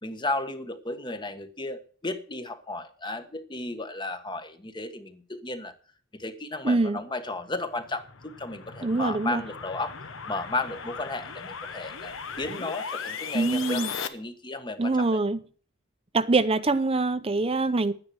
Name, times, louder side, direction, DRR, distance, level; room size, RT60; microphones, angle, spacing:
voice 1, 0.0-5.7 6.2-10.0 10.3-15.2, left 2 dB, 25° left, 1.2 m, -34 dB
voice 2, 6.6-7.0 8.8-9.4 13.3-13.9 14.8-15.4 16.1-17.9, right 3 dB, 30° right, 0.7 m, -24 dB
sound 1, 7.6-14.1, left 6 dB, 70° left, 1.1 m, -38 dB
11.5 x 9.7 x 6.2 m
head